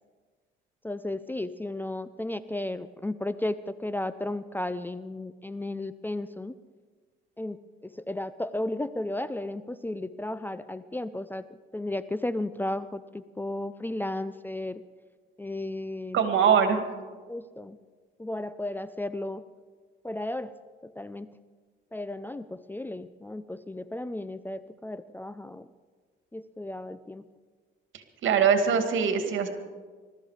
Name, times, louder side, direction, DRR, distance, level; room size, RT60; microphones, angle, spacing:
voice 1, 0.8-6.5 7.4-7.6 7.8-11.5 11.7-14.8 15.4-16.2 17.3-17.8 18.2-19.4 20.0-20.5 20.8-21.3 21.9-25.7 26.3-27.2, left 1 dB, 10° left, 14 dB, 0.5 m, -34 dB
voice 2, 16.1-16.8 28.2-29.5, right 7 dB, 75° right, 7 dB, 2.1 m, -22 dB
21.5 x 13.0 x 5.0 m, 1.5 s
cardioid pair, 90°, 20 cm